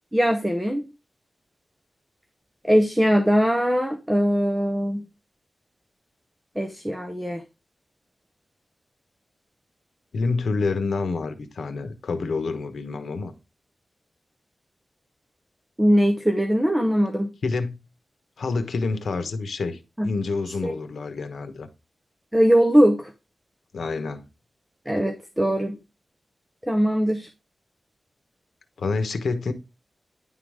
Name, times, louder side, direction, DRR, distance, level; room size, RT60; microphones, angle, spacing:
voice 1, 0.1-0.8 2.6-5.0 6.6-7.4 15.8-17.3 20.0-20.1 20.6-20.7 22.3-23.1 24.9-25.8 26.7-27.3, equal, 10° right, 0.7 m, -21 dB
voice 2, 10.1-13.3 17.4-17.8 18.4-21.7 23.7-24.3 28.8-29.5, left 4 dB, 75° left, 1.0 m, -27 dB
9.9 x 3.8 x 4.9 m
wide cardioid pair, 175°, 0 cm